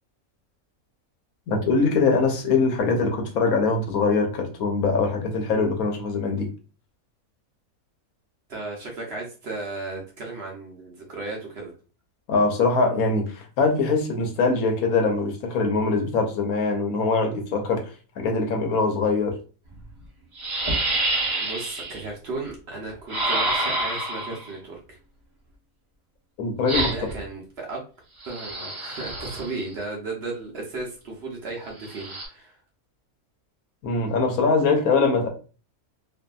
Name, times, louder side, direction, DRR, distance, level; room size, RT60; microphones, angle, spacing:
voice 1, 1.5-6.5 12.3-17.8 18.2-19.3 26.4-26.9 33.8-35.3, left 4 dB, 80° left, 3 dB, 1.1 m, -22 dB
voice 2, 8.5-11.7 21.4-25.0 26.9-27.8 28.2-32.6, right 3 dB, 55° right, -1 dB, 0.8 m, -35 dB
sound 1, 19.7-19.8 20.4-22.0 23.1-24.5 26.7-27.2 28.2-29.6 31.8-32.3, right 2 dB, 25° right, 0.8 m, -27 dB
2.7 x 2.5 x 2.2 m, 0.36 s
omnidirectional pair, 1.5 m